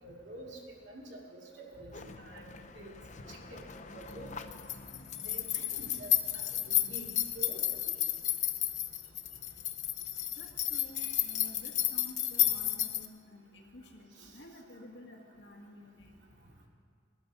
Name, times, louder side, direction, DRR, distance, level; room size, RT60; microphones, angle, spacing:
voice 1, 0.0-2.5 2.7-4.5 5.2-8.0 11.0-11.1 14.2-14.3, right 1 dB, 70° right, -1 dB, 2.7 m, -48 dB
sound 1, 1.9-13.1, left 12 dB, 40° left, 0.7 m, -33 dB
voice 2, 10.4-16.1, left 1 dB, 70° left, 1 dB, 2.1 m, -52 dB
19.5 x 12.0 x 4.2 m, 2.4 s
head